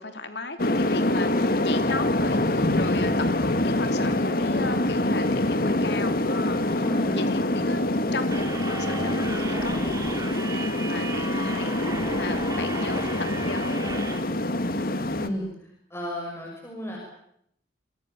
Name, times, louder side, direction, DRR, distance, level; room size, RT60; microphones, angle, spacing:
voice 1, 0.0-6.8 7.1-13.8, left 3 dB, 75° left, 8 dB, 3.1 m, -36 dB
sound 1, 0.6-15.3, left 1 dB, 55° left, 1.8 m, -25 dB
voice 2, 6.7-7.3 15.2-15.5 15.9-17.0, equal, 15° left, -2 dB, 6.3 m, -33 dB
sound 2, 8.3-14.2, right 2 dB, 20° right, 3.4 m, -36 dB
27.5 x 24.5 x 7.2 m, 0.74 s
head